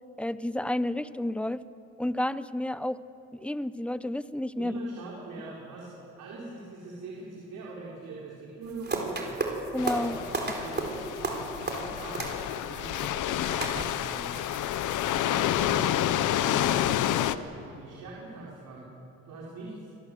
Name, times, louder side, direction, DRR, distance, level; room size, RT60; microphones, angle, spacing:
voice 1, 0.2-1.6 2.0-3.0 3.3-4.7 9.7-10.2, left 1 dB, 5° left, 14 dB, 0.7 m, -30 dB
voice 2, 4.5-9.4 10.1-14.3 15.2-18.9 19.2-19.9, right 3 dB, 80° right, -4 dB, 4.5 m, -42 dB
sound 1, 8.6-15.1, right 3 dB, 35° right, 4.4 m, -35 dB
sound 2, 9.8-17.4, left 12 dB, 80° left, 0.9 m, -29 dB
26.5 x 18.0 x 7.8 m, 2.7 s
cardioid pair, 90°, 30 cm